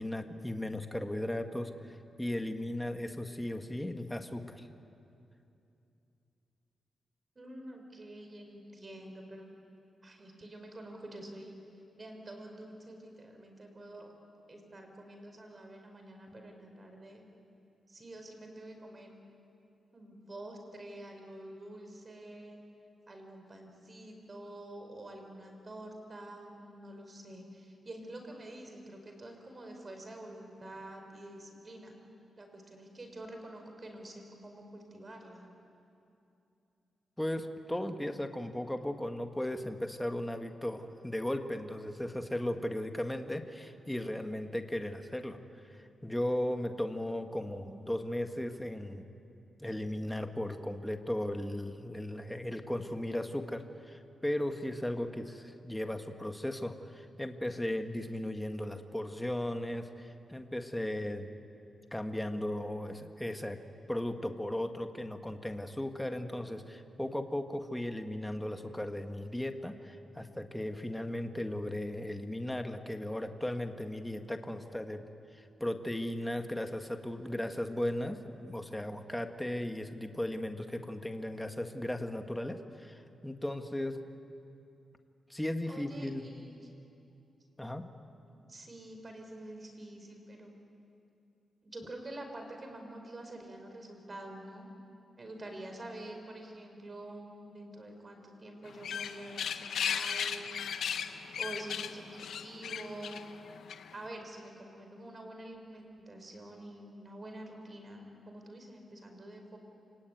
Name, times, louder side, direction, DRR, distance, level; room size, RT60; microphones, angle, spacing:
voice 1, 0.0-4.7 37.2-45.4 45.7-49.1 49.6-61.3 61.9-63.6 63.9-75.1 75.3-84.0 85.3-86.3 87.6-87.9, left 1 dB, 10° left, 6 dB, 1.9 m, -36 dB
voice 2, 7.4-9.5 10.0-11.6 12.0-14.1 14.5-17.2 17.9-19.1 19.9-22.6 23.1-31.9 32.4-35.5 85.7-86.6 88.3-90.5 91.6-94.7 95.2-100.7 101.4-103.3 103.9-109.6, right 1 dB, 35° right, 4 dB, 5.2 m, -47 dB
sound 1, 98.7-104.0, left 8 dB, 80° left, 1.0 m, -36 dB
28.0 x 18.5 x 9.4 m, 2.7 s
cardioid pair, 65°, 0 cm